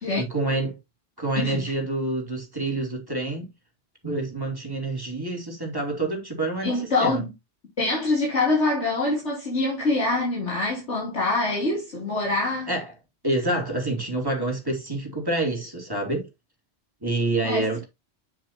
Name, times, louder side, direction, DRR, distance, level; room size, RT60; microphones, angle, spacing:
voice 1, 0.2-0.8 1.2-3.5 4.0-6.7 7.0-7.2 12.7-12.9 13.2-16.3 17.0-17.8, right 2 dB, 20° right, 3.0 m, -27 dB
voice 2, 6.6-7.3 7.8-12.7 17.4-17.9, left 2 dB, 80° left, 3.4 m, -25 dB
8.4 x 7.4 x 2.9 m
omnidirectional pair, 1.2 m